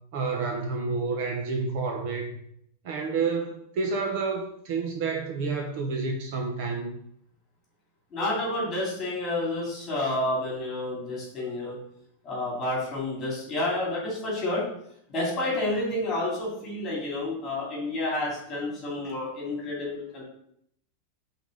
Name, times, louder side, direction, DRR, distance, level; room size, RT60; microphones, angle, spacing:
voice 1, 0.1-2.4 2.8-6.9, right 4 dB, 45° right, 2 dB, 0.8 m, -29 dB
voice 2, 8.1-11.7 12.2-14.6 15.1-20.2, left 2 dB, 20° left, -4 dB, 2.6 m, -30 dB
5.3 x 4.0 x 5.2 m, 0.71 s
supercardioid pair, 175°, 0 cm